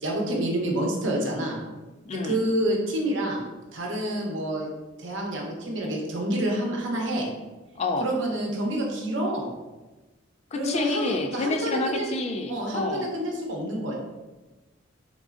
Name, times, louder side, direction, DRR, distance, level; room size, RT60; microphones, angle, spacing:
voice 1, 0.0-1.6 2.1-3.4 3.7-4.7 5.0-7.3 8.0-9.5 10.5-12.1 12.5-13.9, right 1 dB, 65° right, -1 dB, 0.8 m, -28 dB
voice 2, 2.1-2.4 7.8-8.1 10.5-13.1, left 2 dB, 35° left, 5 dB, 0.3 m, -28 dB
4.1 x 3.6 x 2.4 m, 1.2 s
head